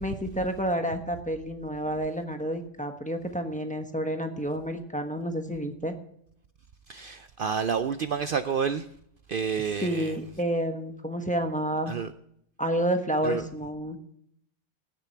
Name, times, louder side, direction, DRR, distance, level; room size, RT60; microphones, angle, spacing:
voice 1, 0.0-5.9 9.8-11.9 12.6-14.0, right 1 dB, 5° left, 0.9 m, -29 dB
voice 2, 6.9-8.9 9.3-10.1 11.9-12.1 13.2-13.4, right 6 dB, 80° right, 0.4 m, -29 dB
16.5 x 6.9 x 4.5 m
omnidirectional pair, 1.5 m